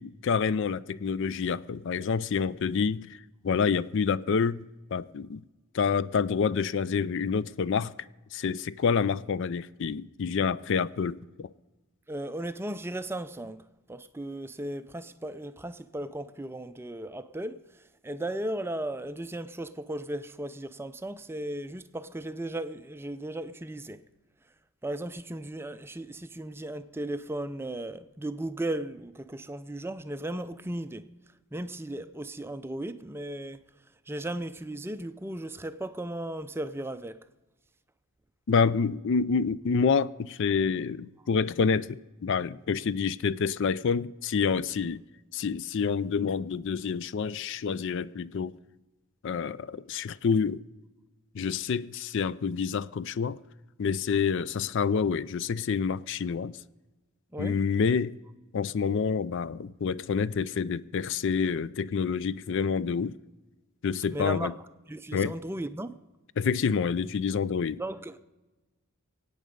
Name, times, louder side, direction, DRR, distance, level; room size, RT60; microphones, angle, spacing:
voice 1, 0.0-3.2 3.4-4.6 4.9-5.4 5.7-7.9 8.3-11.5 38.5-45.0 45.3-48.6 49.2-50.6 51.3-53.4 53.8-56.6 57.4-58.2 58.5-63.2 63.8-64.5 65.1-65.4 66.4-67.8, left 5 dB, 55° left, 0.4 m, -28 dB
voice 2, 12.1-17.6 18.0-24.0 24.8-31.0 31.5-33.6 34.1-37.2 57.3-57.6 64.1-64.5 64.9-66.0 67.8-68.2, right 1 dB, 10° right, 0.4 m, -36 dB
23.5 x 8.8 x 5.2 m
head